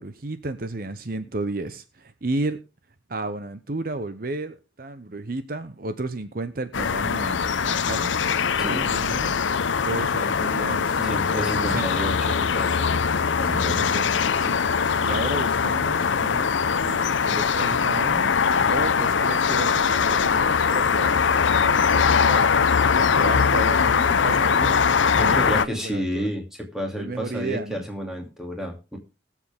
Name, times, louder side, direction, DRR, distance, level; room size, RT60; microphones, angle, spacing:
voice 1, 0.0-2.6 3.1-8.1 8.5-9.4 9.8-12.0 13.4-14.6 15.0-16.5 16.8-22.6 22.9-24.8 25.2-26.3 26.9-27.8, right 2 dB, 50° right, 11 dB, 0.8 m, -33 dB
sound 1, 6.7-25.7, left 6 dB, 85° left, 0.6 m, -21 dB
voice 2, 8.6-8.9 11.0-14.2 25.1-29.0, equal, 5° right, 1 dB, 2.6 m, -31 dB
20.5 x 7.4 x 3.6 m, 0.29 s
head